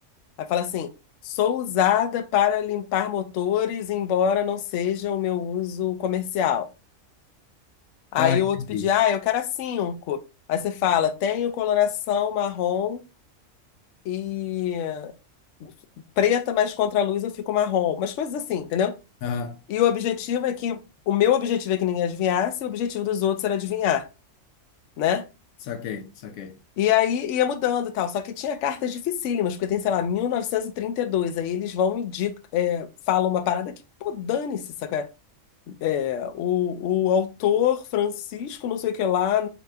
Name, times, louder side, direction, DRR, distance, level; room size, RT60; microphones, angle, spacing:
voice 1, 0.4-0.9 1.2-6.7 8.1-10.2 10.5-13.0 14.1-15.1 15.6-15.7 16.2-18.9 19.7-20.8 21.1-24.1 25.0-25.2 26.8-33.7 34.0-35.1 35.7-39.5, left 9 dB, 70° left, 0.9 m, -24 dB
voice 2, 8.2-8.9 19.2-19.6 25.7-26.6, left 6 dB, 90° left, 1.1 m, -29 dB
3.9 x 2.8 x 3.3 m
omnidirectional pair, 1.4 m